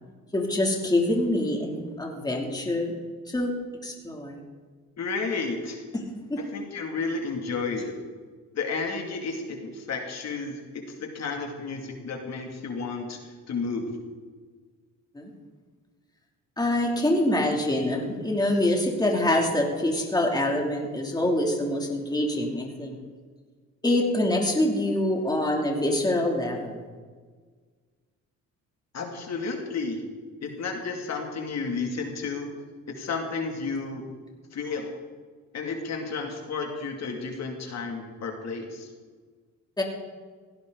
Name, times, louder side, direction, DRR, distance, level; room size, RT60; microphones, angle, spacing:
voice 1, 0.3-2.9 3.3-3.5 3.8-4.4 5.9-6.0 6.3-6.4 15.1-15.3 16.6-23.0 23.8-26.8 39.8-39.9, left 1 dB, 10° left, 0 dB, 2.9 m, -25 dB
voice 2, 5.0-5.8 6.4-7.9 8.5-13.9 28.9-30.0 30.4-32.5 33.0-34.0 34.5-35.0 35.5-38.9, left 4 dB, 55° left, 2 dB, 2.7 m, -32 dB
17.0 x 17.0 x 4.0 m, 1.5 s
cardioid pair, 100°, 32 cm